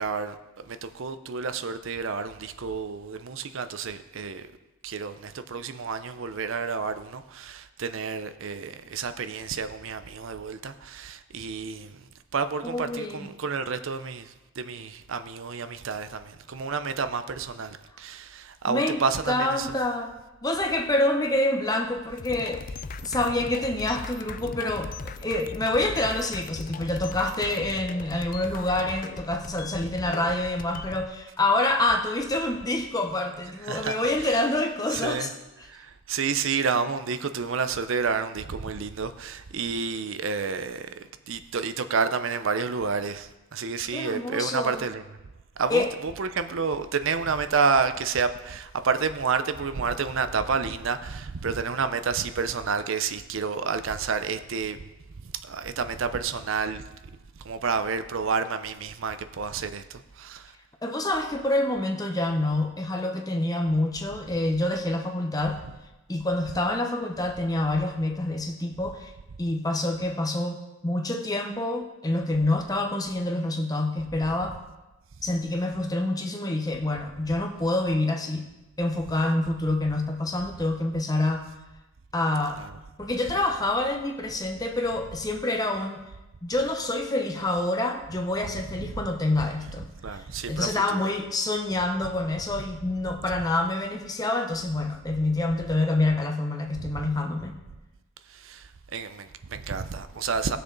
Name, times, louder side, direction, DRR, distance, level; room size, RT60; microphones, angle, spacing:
voice 1, 0.0-4.5 4.8-19.7 33.6-34.3 34.9-35.3 35.6-45.0 45.6-54.9 55.2-56.9 57.4-60.5 82.6-82.7 88.8-89.0 90.0-91.0 93.3-93.4 96.8-97.0 98.3-100.6, right 5 dB, 65° right, 0.6 m, -30 dB
voice 2, 12.6-13.3 18.7-20.1 20.4-22.6 23.0-35.3 43.9-44.9 45.7-45.9 60.8-65.6 66.1-69.1 69.4-74.6 75.2-78.4 78.8-81.4 82.1-82.6 83.0-86.0 86.4-97.6, left 2 dB, 15° left, 0.9 m, -27 dB
sound 1, 22.2-31.1, left 4 dB, 40° left, 0.4 m, -39 dB
18.0 x 6.7 x 3.9 m
head